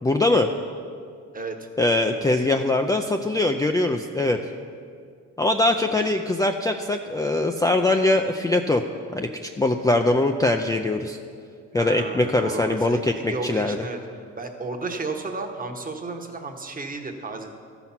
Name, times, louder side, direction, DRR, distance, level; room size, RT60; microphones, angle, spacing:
voice 1, 0.0-0.5 1.8-4.4 5.4-8.8 9.1-11.2 11.7-13.8, left 2 dB, 10° left, 4 dB, 0.4 m, -22 dB
voice 2, 11.7-14.0 14.4-17.5, right 3 dB, 30° right, 4 dB, 1.1 m, -33 dB
13.5 x 6.0 x 5.7 m, 2.2 s
cardioid pair, 90°, 30 cm